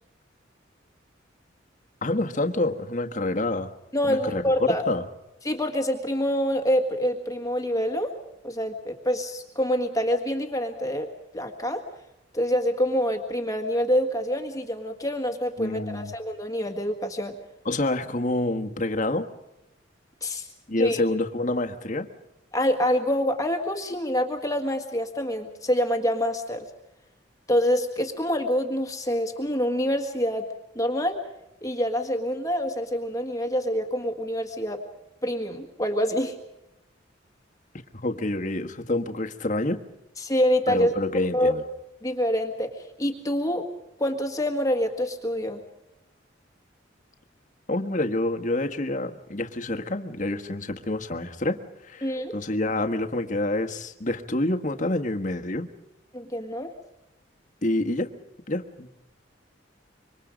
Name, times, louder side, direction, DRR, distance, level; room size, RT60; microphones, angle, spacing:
voice 1, 2.0-3.7 4.0-5.0 15.6-16.1 17.6-19.3 20.7-22.1 37.9-39.8 40.7-41.6 47.7-55.7 57.6-58.1 58.5-58.9, left 2 dB, 40° left, 5 dB, 1.5 m, -27 dB
voice 2, 3.9-4.9 5.4-8.1 8.4-11.1 11.3-11.8 12.3-17.4 20.2-20.5 20.8-21.0 22.5-26.7 27.5-30.5 30.8-31.2 31.6-34.8 35.2-36.4 40.2-41.6 42.0-43.7 44.0-45.6 52.0-52.3 56.1-56.7, equal, 20° left, 5 dB, 1.7 m, -26 dB
26.0 x 24.5 x 5.2 m, 0.89 s
head